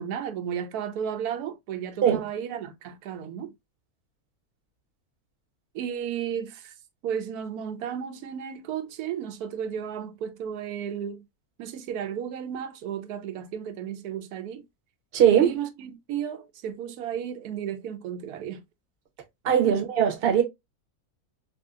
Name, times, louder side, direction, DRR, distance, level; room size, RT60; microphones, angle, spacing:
voice 1, 0.0-3.5 5.7-6.7 7.0-11.2 11.6-14.6 15.3-18.6 19.6-19.8, right 8 dB, 85° right, 1.1 m, -33 dB
voice 2, 15.1-15.6 19.4-20.4, right 9 dB, 45° right, 0.9 m, -20 dB
3.3 x 2.7 x 2.3 m
omnidirectional pair, 1.6 m